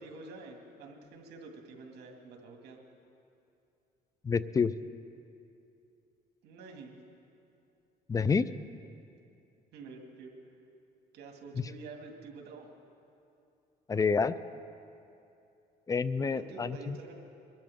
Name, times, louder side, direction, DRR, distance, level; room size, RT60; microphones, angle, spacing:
voice 1, 0.0-2.8 6.4-7.0 9.7-10.3 11.1-12.7 16.3-17.1, right 3 dB, 75° right, 1 dB, 2.2 m, -48 dB
voice 2, 4.2-4.7 8.1-8.4 13.9-14.4 15.9-17.0, left 5 dB, 20° left, 15 dB, 0.4 m, -28 dB
22.5 x 13.0 x 3.6 m, 2.6 s
cardioid pair, 110°, 17 cm